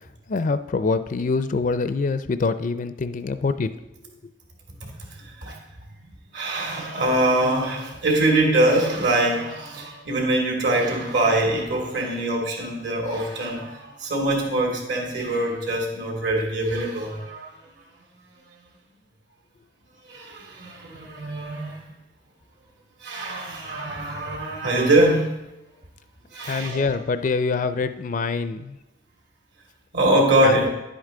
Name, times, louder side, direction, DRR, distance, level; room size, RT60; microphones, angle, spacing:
voice 1, 0.3-3.7 26.4-28.8 30.4-30.6, left 4 dB, 45° left, 11 dB, 0.4 m, -25 dB
voice 2, 4.8-5.5 6.3-17.5 20.1-21.8 23.0-25.3 26.3-26.8 29.9-30.7, right 1 dB, 70° right, 0 dB, 2.6 m, -23 dB
10.5 x 8.1 x 3.8 m, 0.98 s
head